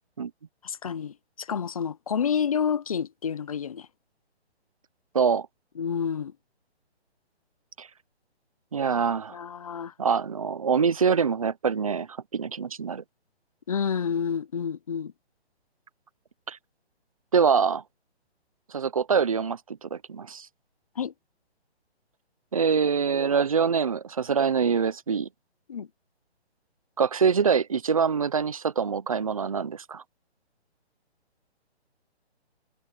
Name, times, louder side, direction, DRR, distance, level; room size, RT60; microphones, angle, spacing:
voice 1, 0.6-3.9 5.8-6.3 9.3-9.9 13.7-15.1 21.0-21.1 25.7-25.9, left 7 dB, 35° left, 0.6 m, -29 dB
voice 2, 5.1-5.5 7.8-7.9 8.7-9.4 10.0-13.0 16.5-16.6 17.3-17.8 18.7-20.5 22.5-25.3 27.0-30.0, right 6 dB, 35° right, 0.5 m, -24 dB
hypercardioid pair, 165°, 33 cm